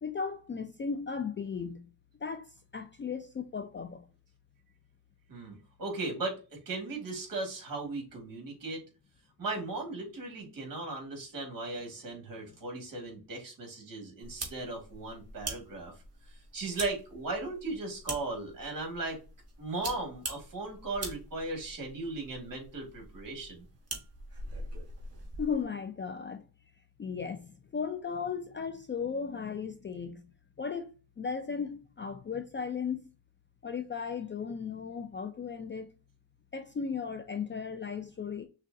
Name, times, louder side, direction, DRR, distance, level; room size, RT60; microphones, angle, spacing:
voice 1, 0.0-1.9 2.2-4.1 25.4-26.5 27.0-30.2 30.6-30.9 31.2-33.0 33.6-35.9 36.5-38.5, left 6 dB, 30° left, 0.4 m, -36 dB
voice 2, 5.3-8.8 9.4-15.9 16.5-19.2 19.6-23.7, right 2 dB, 50° right, 2.2 m, -37 dB
sound 1, 14.2-25.6, right 2 dB, 35° right, 1.4 m, -44 dB
6.2 x 2.3 x 2.6 m
cardioid pair, 110°, 42 cm